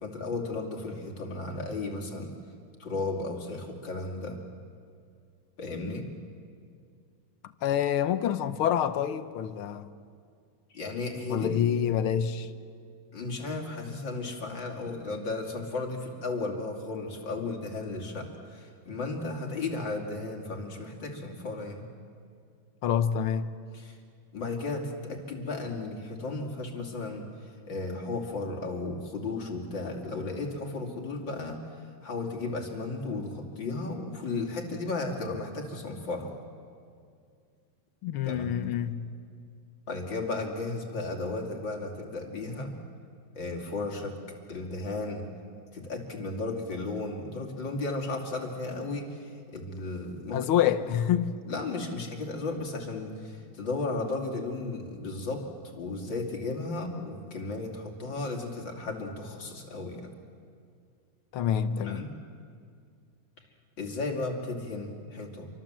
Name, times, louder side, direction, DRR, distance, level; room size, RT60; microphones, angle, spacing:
voice 1, 0.0-2.3 2.8-4.4 5.6-6.1 10.7-11.7 13.1-21.8 23.7-24.0 24.3-27.3 27.7-31.6 32.0-36.3 38.3-38.7 39.9-42.8 43.4-44.2 44.5-45.3 45.7-50.7 51.5-55.5 55.7-60.1 61.8-62.1 63.8-65.5, left 3 dB, 60° left, 3.5 m, -34 dB
voice 2, 7.6-9.9 11.3-12.5 22.8-23.5 38.0-39.0 50.3-51.3 61.3-62.1, left 9 dB, 85° left, 1.8 m, -27 dB
28.0 x 24.5 x 7.5 m
omnidirectional pair, 2.3 m